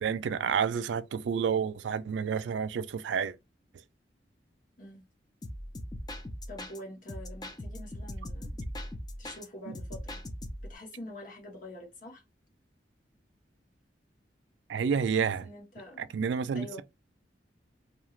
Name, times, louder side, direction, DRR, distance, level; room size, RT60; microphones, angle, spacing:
voice 1, 0.0-3.3 9.7-9.8 14.7-15.4 16.0-16.8, right 6 dB, 85° right, 0.3 m, -30 dB
sound 1, 5.4-6.8 7.1-9.5 9.7-10.8, left 1 dB, 25° left, 0.5 m, -40 dB
voice 2, 6.5-8.6 9.2-10.2 10.6-12.2 15.4-16.2 16.5-16.8, left 1 dB, 50° left, 1.2 m, -46 dB
2.8 x 2.4 x 3.0 m
head